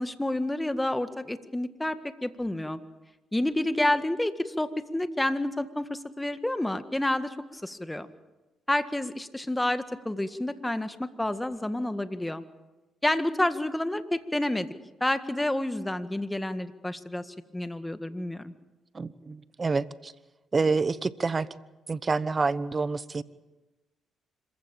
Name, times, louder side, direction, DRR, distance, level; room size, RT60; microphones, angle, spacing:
voice 1, 0.0-2.8 3.3-8.1 8.7-12.4 13.0-14.7 15.0-18.5, left 1 dB, 10° left, 11 dB, 1.8 m, -29 dB
voice 2, 18.9-20.1 20.5-21.5 21.9-23.2, right 4 dB, 35° right, 17 dB, 1.1 m, -27 dB
26.0 x 15.5 x 8.9 m, 1.1 s
supercardioid pair, 60°, 0 cm